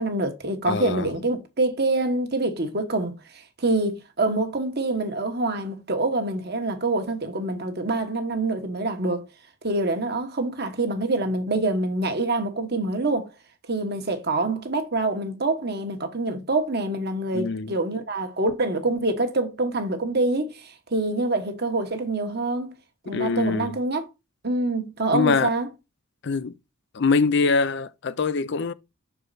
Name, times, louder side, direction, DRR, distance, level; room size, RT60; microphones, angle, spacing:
voice 1, 0.0-9.3 9.6-13.3 13.7-22.7 23.1-24.1 24.4-25.7, right 2 dB, 50° right, 1.2 m, -26 dB
voice 2, 0.6-1.1 17.3-17.8 23.1-23.8 25.1-25.5 26.2-26.5 26.9-28.7, left 4 dB, 55° left, 0.5 m, -23 dB
6.4 x 4.7 x 3.9 m
head